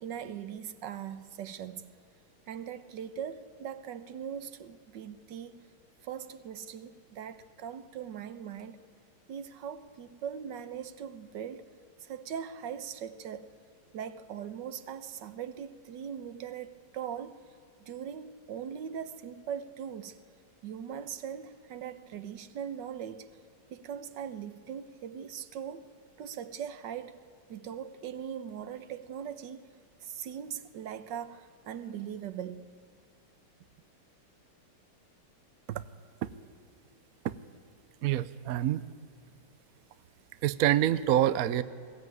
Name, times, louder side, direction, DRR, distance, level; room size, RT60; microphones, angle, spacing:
voice 1, 0.0-1.9 2.5-5.7 6.0-8.8 9.3-11.7 12.0-13.5 13.9-17.4 17.9-20.2 20.6-23.3 23.7-25.9 26.2-27.2 27.5-29.7 30.0-32.7, right 8 dB, 65° right, 1.5 m, -40 dB
voice 2, 38.0-38.8 40.4-41.6, right 12 dB, 80° right, 0.8 m, -26 dB
21.0 x 16.5 x 9.4 m
omnidirectional pair, 2.3 m